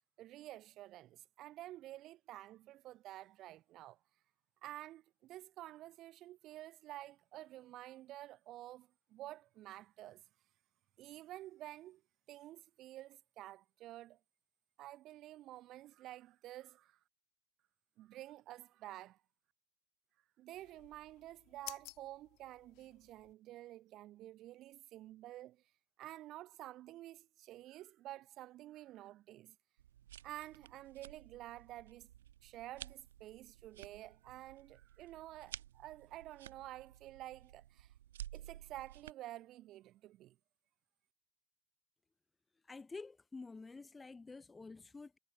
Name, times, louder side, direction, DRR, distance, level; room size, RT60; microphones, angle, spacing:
voice 1, 0.2-4.0 4.6-10.2 11.0-12.0 12.3-14.2 14.8-17.0 18.0-19.2 20.4-25.6 26.0-29.6 30.2-32.1 32.4-37.9 38.3-40.4, right 15 dB, 35° right, 0.5 m, -51 dB
sound 1, 20.5-23.3, left 25 dB, 45° left, 1.6 m, -54 dB
sound 2, 29.8-39.1, right 12 dB, 65° right, 1.2 m, -54 dB
voice 2, 42.6-45.2, left 3 dB, 10° left, 0.6 m, -49 dB
figure-of-eight pair, 85°, 0 cm